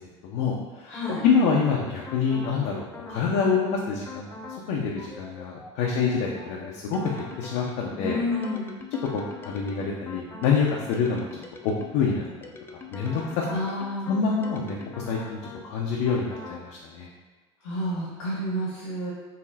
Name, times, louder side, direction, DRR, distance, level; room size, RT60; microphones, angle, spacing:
voice 1, 0.0-1.0 1.2-4.3 4.7-8.2 9.1-11.3 11.6-12.2 12.9-13.4 14.1-14.8 15.1-15.4 15.6-17.1, left 5 dB, 65° left, -2 dB, 0.6 m, -26 dB
voice 2, 0.9-1.2 8.0-8.7 13.5-14.2 17.6-19.1, left 1 dB, 85° left, -7 dB, 1.0 m, -30 dB
sound 1, 0.9-1.7 2.1-2.6 2.9-3.7 4.1-4.6 5.0-12.0 12.4-15.7 16.1-16.6, left 4 dB, 15° left, 0.4 m, -42 dB
4.0 x 2.0 x 4.0 m, 1.3 s
hypercardioid pair, 90°, 15 cm